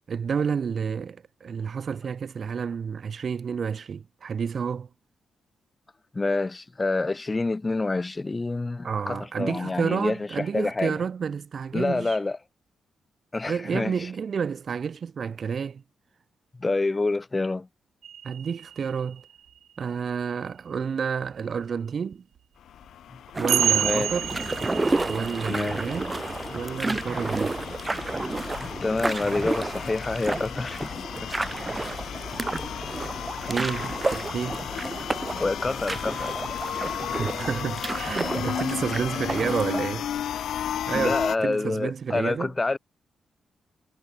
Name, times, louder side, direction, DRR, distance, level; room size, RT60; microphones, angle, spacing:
voice 1, 0.1-4.9 8.8-12.2 13.5-15.8 18.2-19.3 19.8-22.2 23.4-24.3 25.1-26.2 26.5-27.6 33.5-34.7 37.0-40.1 40.9-42.5, right 6 dB, 45° right, 0.6 m, -30 dB
voice 2, 6.1-11.0 11.7-12.4 13.3-13.9 16.6-17.7 23.8-24.1 25.5-25.8 28.6-31.3 35.4-36.3 40.9-42.8, left 3 dB, 20° left, 1.2 m, -27 dB
sound 1, 18.0-19.6 20.8-20.9 22.4-22.5 23.5-27.6 29.1-29.2, right 10 dB, 80° right, 1.2 m, -30 dB
sound 2, 22.6-41.4, left 10 dB, 80° left, 2.1 m, -34 dB
sound 3, 23.3-39.8, right 2 dB, 15° right, 0.9 m, -31 dB
wide cardioid pair, 160°, 0 cm